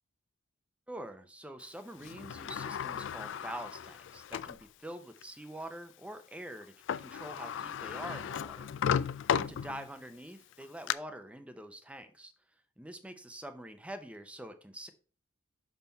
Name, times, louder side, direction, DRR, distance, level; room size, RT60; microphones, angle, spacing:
voice 1, 0.9-8.7 9.3-12.3 12.8-14.9, right 1 dB, 5° right, 8 dB, 0.6 m, -45 dB
Sliding door, 2.0-4.6 5.2-5.3 6.6-6.7 6.9-10.1 10.5-10.9, left 8 dB, 60° left, 0.3 m, -35 dB
5.8 x 5.6 x 4.0 m, 0.39 s
head